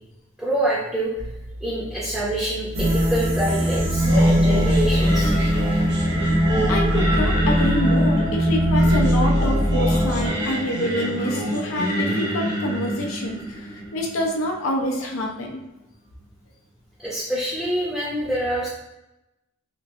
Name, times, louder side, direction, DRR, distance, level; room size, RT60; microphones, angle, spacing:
voice 1, 0.4-1.1 1.6-5.3 17.0-18.7, right 1 dB, ahead, -9 dB, 0.5 m, -26 dB
sound 1, 1.2-7.5, right 1 dB, 40° left, 0.6 m, -38 dB
sound 2, 2.7-10.3, equal, 85° right, 0.8 m, -20 dB
Singing, 4.0-15.1, equal, 55° right, 0.6 m, -27 dB
voice 2, 6.7-15.6, left 1 dB, 90° left, 1 dB, 0.5 m, -27 dB
2.9 x 2.4 x 2.6 m, 0.94 s
head